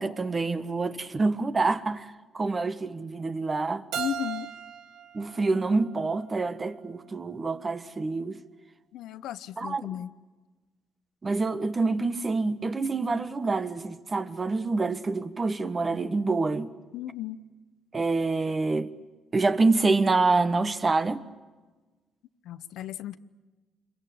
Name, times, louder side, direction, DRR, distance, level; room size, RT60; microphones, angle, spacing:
voice 1, 0.0-3.8 5.1-8.4 9.6-9.9 11.2-16.7 17.9-18.9 19.3-21.2, right 3 dB, 30° right, 1.5 m, -26 dB
Keyboard (musical), 3.9-6.7, right 9 dB, 85° right, 1.3 m, -38 dB
voice 2, 4.0-4.5 8.9-10.1 16.9-17.4 22.4-23.2, left 11 dB, 85° left, 0.9 m, -35 dB
27.5 x 23.0 x 8.6 m
cardioid pair, 90°, 0 cm